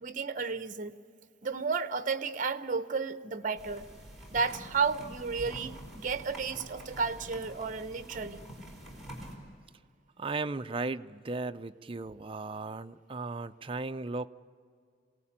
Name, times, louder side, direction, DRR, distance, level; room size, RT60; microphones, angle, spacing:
voice 1, 0.0-0.9 1.4-3.9 4.3-8.5, right 5 dB, 45° right, 12 dB, 0.9 m, -32 dB
sound 1, 3.6-9.3, equal, ahead, 5.0 m, -46 dB
voice 2, 10.2-14.3, right 3 dB, 30° right, 9 dB, 0.5 m, -36 dB
27.5 x 18.0 x 8.7 m, 2.2 s
head